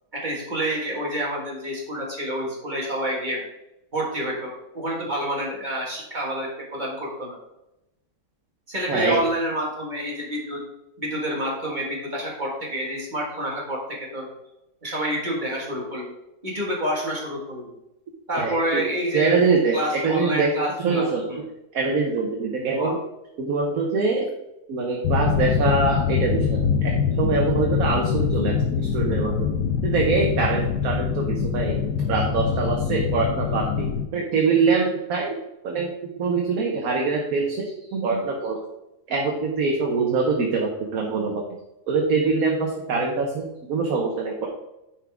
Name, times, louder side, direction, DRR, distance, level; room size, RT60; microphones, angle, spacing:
voice 1, 0.1-3.4 3.9-7.4 8.7-10.6 11.0-13.8 14.1-14.3 14.8-16.1 16.4-17.7 18.3-19.4 19.7-21.4 22.5-23.0, equal, 30° right, -2 dB, 1.7 m, -28 dB
voice 2, 8.9-9.2 18.3-18.8 19.1-20.5 20.8-21.2 21.7-23.0 23.4-24.3 24.7-26.9 27.2-29.5 29.8-31.8 32.1-33.9 34.1-35.3 35.6-35.9 36.2-38.6 39.1-41.4 41.9-44.5, right 4 dB, 60° right, 0 dB, 1.4 m, -24 dB
sound 1, 25.0-34.1, left 6 dB, 75° left, 1.2 m, -24 dB
9.7 x 4.9 x 3.5 m, 0.90 s
omnidirectional pair, 1.8 m